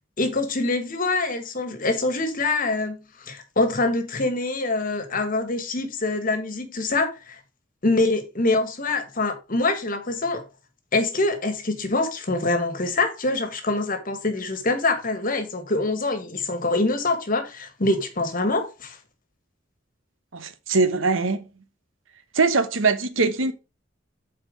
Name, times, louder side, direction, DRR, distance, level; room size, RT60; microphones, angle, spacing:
voice 1, 0.2-3.0 3.3-7.4 7.8-10.4 10.9-19.0, left 2 dB, 45° left, 1.4 m, -25 dB
voice 2, 20.3-21.4 22.3-23.5, right 4 dB, 85° right, 1.0 m, -22 dB
7.7 x 4.3 x 5.0 m
head